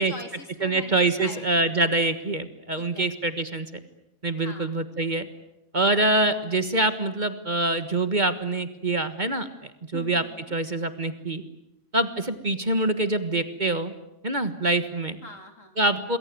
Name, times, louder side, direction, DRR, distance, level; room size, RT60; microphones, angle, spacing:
voice 1, 0.0-1.4 2.8-3.1 4.4-4.8 9.9-10.5 15.2-15.8, left 3 dB, 65° left, 6 dB, 3.8 m, -42 dB
voice 2, 0.6-3.7 4.2-5.3 5.7-11.4 11.9-13.9 14.2-15.2 15.8-16.2, right 2 dB, 35° right, 10 dB, 1.6 m, -25 dB
27.5 x 21.5 x 9.3 m, 0.88 s
omnidirectional pair, 1.4 m